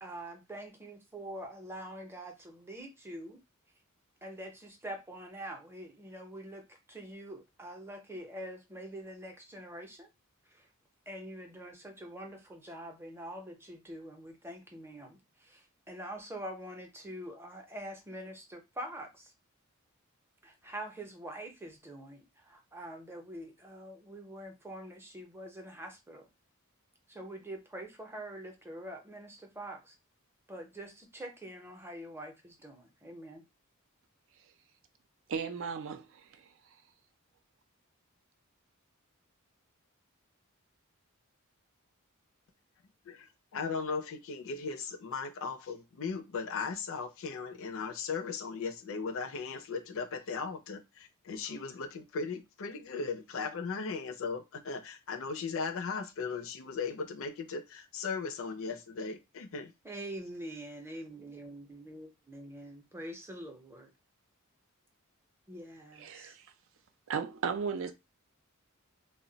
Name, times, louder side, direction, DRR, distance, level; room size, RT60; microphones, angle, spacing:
voice 1, 0.0-3.4 4.2-10.1 10.5-10.6 11.1-19.3 20.4-26.3 27.1-29.9 30.5-33.4 59.8-63.9 65.5-66.4, right 1 dB, 10° right, 0.6 m, -45 dB
voice 2, 35.3-36.4 66.0-66.5 67.1-67.9, right 6 dB, 65° right, 0.4 m, -35 dB
voice 3, 43.1-59.7, left 5 dB, 65° left, 0.5 m, -37 dB
2.2 x 2.0 x 3.8 m
head